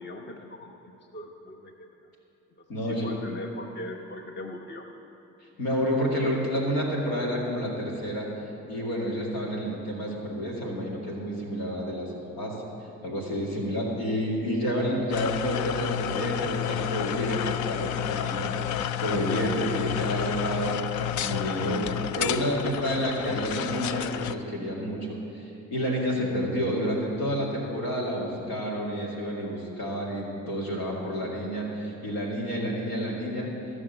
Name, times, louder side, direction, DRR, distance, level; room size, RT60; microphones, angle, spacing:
voice 1, 0.0-1.9 2.6-4.9, left 2 dB, 30° left, 3 dB, 1.0 m, -40 dB
voice 2, 2.7-3.1 5.6-8.3 8.7-12.6 13.0-20.8 21.2-33.5, equal, 85° left, -2 dB, 2.2 m, -29 dB
sound 1, 15.1-24.3, left 10 dB, 60° left, 0.5 m, -30 dB
14.5 x 6.3 x 7.8 m, 3.0 s
hypercardioid pair, 55°, 33 cm